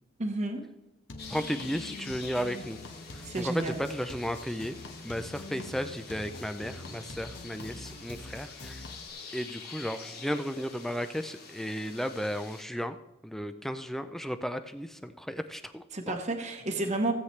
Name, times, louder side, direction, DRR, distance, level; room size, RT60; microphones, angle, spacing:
voice 1, 0.2-0.6 3.2-3.7 15.9-17.1, right 2 dB, 35° right, 3 dB, 1.0 m, -31 dB
sound 1, 1.1-9.1, left 2 dB, 65° left, 1.3 m, -45 dB
sound 2, 1.2-12.6, left 5 dB, 50° left, 2.2 m, -47 dB
voice 2, 1.3-2.8 3.1-4.8 5.0-8.8 9.3-13.0 13.2-16.2, equal, ahead, 10 dB, 0.4 m, -34 dB
16.0 x 8.2 x 3.2 m, 0.96 s
head